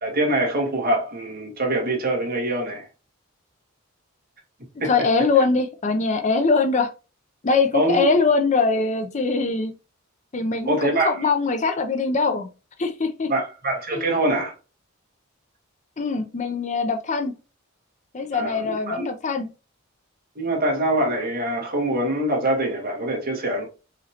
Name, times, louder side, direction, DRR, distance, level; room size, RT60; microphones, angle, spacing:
voice 1, 0.0-2.9 4.8-4.9 7.7-8.0 10.6-11.3 13.3-14.5 18.3-19.1 20.3-23.7, right 1 dB, 45° right, 1.6 m, -24 dB
voice 2, 4.8-6.9 7.4-9.7 10.3-12.5 12.8-13.3 13.9-14.0 16.0-17.3 18.1-19.5, left 4 dB, 35° left, 0.5 m, -22 dB
4.9 x 3.1 x 2.8 m
head